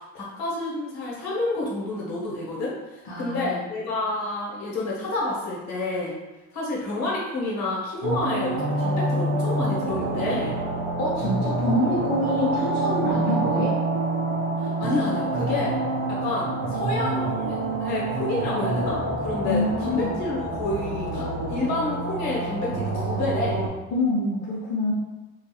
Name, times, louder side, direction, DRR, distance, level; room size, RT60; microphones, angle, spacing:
voice 1, 0.1-6.1 6.5-10.5 14.6-15.8 16.1-23.6, left 2 dB, 55° left, -5 dB, 1.0 m, -29 dB
voice 2, 3.0-3.6 11.0-13.7 19.4-20.1 23.9-24.9, left 1 dB, 35° left, -7 dB, 0.7 m, -26 dB
sound 1, 8.0-23.7, right 2 dB, 45° right, 0.5 m, -27 dB
2.8 x 2.3 x 2.3 m, 1.1 s
cardioid pair, 140°, 32 cm